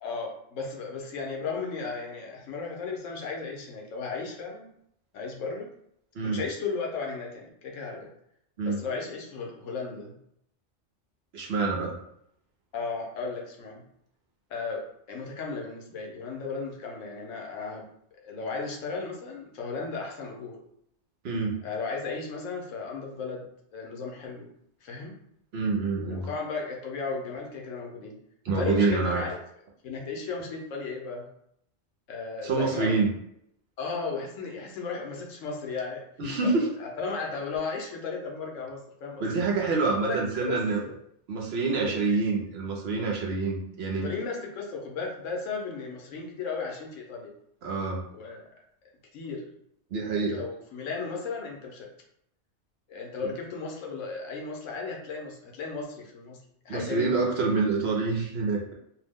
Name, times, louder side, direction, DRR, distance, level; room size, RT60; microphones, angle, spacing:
voice 1, 0.0-4.7 5.1-5.7 6.2-8.1 8.6-10.1 12.7-13.8 14.5-17.9 18.2-20.6 21.6-23.5 23.7-24.5 24.8-25.2 26.1-28.2 28.5-29.4 29.8-31.3 32.1-33.0 33.8-36.0 36.4-39.4 40.0-41.0 41.8-42.0 44.0-47.3 48.1-48.5 49.1-49.5 50.1-51.9 52.9-56.4 56.6-57.3, left 4 dB, 85° left, 0 dB, 1.0 m, -35 dB
voice 2, 11.3-12.0 21.2-21.6 25.5-26.3 28.4-29.3 32.4-33.1 36.2-36.7 39.2-40.8 41.3-44.1 47.6-48.0 49.9-50.4 56.7-58.7, right 4 dB, 60° right, 0 dB, 0.8 m, -27 dB
2.6 x 2.0 x 3.4 m, 0.72 s
omnidirectional pair, 1.3 m